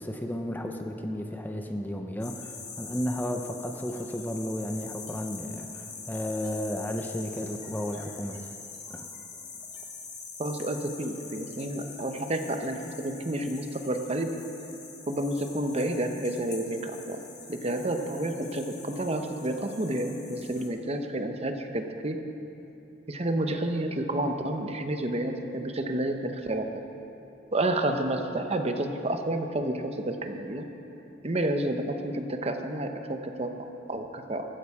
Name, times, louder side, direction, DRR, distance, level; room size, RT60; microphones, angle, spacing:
voice 1, 0.0-8.5 8.9-9.1, left 1 dB, 10° left, 4 dB, 0.6 m, -33 dB
sound 1, 2.2-20.7, left 5 dB, 40° left, 1.9 m, -44 dB
voice 2, 10.4-14.4 15.1-17.2 17.5-22.2 23.1-26.7 27.5-30.7 31.2-34.5, right 1 dB, 35° right, 6 dB, 0.9 m, -30 dB
14.5 x 13.0 x 4.9 m, 2.9 s
head